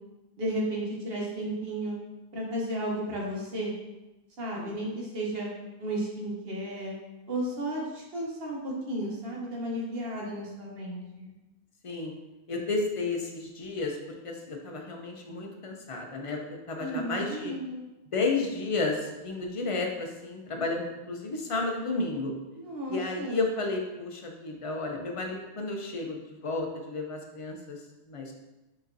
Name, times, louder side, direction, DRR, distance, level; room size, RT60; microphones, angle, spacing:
voice 1, 0.4-2.0 2.3-3.7 4.4-5.5 5.8-7.0 7.3-11.3 16.8-17.9 22.6-23.5, right 1 dB, 65° right, -3 dB, 1.2 m, -33 dB
voice 2, 11.8-12.2 12.5-14.0 14.2-17.5 18.1-22.3 22.9-28.3, left 3 dB, 45° left, 2 dB, 0.4 m, -32 dB
4.9 x 3.0 x 2.6 m, 1.0 s
omnidirectional pair, 1.1 m